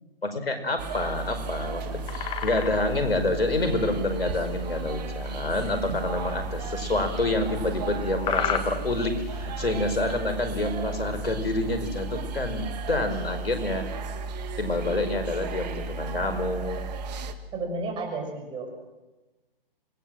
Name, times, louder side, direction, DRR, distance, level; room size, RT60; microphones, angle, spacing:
voice 1, 0.2-13.9 14.6-16.8, left 2 dB, 85° left, 7 dB, 5.0 m, -28 dB
sound 1, 0.8-17.3, right 3 dB, 45° right, 2.3 m, -34 dB
sound 2, 1.8-3.0 3.6-3.8 4.2-5.0 5.8-6.0 6.6-7.7 8.2-8.6, left 8 dB, 15° left, 1.9 m, -31 dB
voice 2, 17.5-18.8, right 3 dB, 15° right, 3 dB, 6.4 m, -32 dB
26.5 x 20.5 x 7.7 m, 1.1 s
figure-of-eight pair, 135°, 29 cm